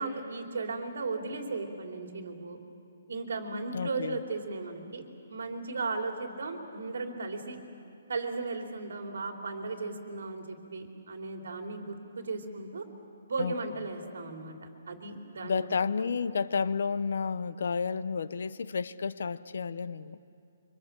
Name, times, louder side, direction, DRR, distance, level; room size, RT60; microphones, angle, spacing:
voice 1, 0.0-2.6 3.1-5.0 5.3-7.6 8.1-12.8 13.3-15.7 16.0-16.1, right 3 dB, 65° right, 3 dB, 3.2 m, -36 dB
voice 2, 3.7-4.2 13.4-13.5 15.4-20.2, left 5 dB, 60° left, 16 dB, 0.7 m, -31 dB
25.5 x 24.5 x 7.4 m, 2.5 s
hypercardioid pair, 180°, 0 cm